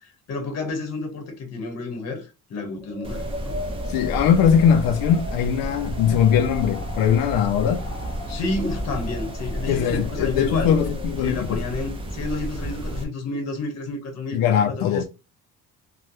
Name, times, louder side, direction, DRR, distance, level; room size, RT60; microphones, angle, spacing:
voice 1, 0.0-3.6 8.3-10.7 11.2-14.4 14.7-15.0, left 3 dB, 50° left, 1.2 m, -30 dB
Wind, 2.8-11.2, left 3 dB, 10° left, 1.0 m, -38 dB
sound 1, 3.0-13.0, right 1 dB, 15° right, 0.5 m, -31 dB
voice 2, 3.9-7.8 9.7-11.6 14.3-15.0, left 8 dB, 90° left, 0.5 m, -20 dB
3.2 x 2.3 x 2.7 m
cardioid pair, 170°, 33 cm